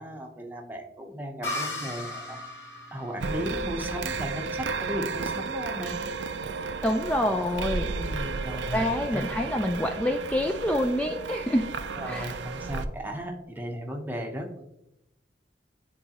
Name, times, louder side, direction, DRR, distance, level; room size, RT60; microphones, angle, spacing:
voice 1, 0.0-2.4 2.9-5.9 7.9-9.3 12.0-14.6, equal, 10° right, 2 dB, 0.9 m, -36 dB
sound 1, 1.4-5.0, left 2 dB, 85° left, 2.1 m, -37 dB
sound 2, 3.2-12.9, right 4 dB, 85° right, 0.5 m, -33 dB
voice 2, 6.8-7.9 8.7-11.6 12.1-12.3, left 1 dB, 10° left, 3 dB, 0.3 m, -27 dB
10.0 x 4.0 x 2.9 m, 0.85 s
head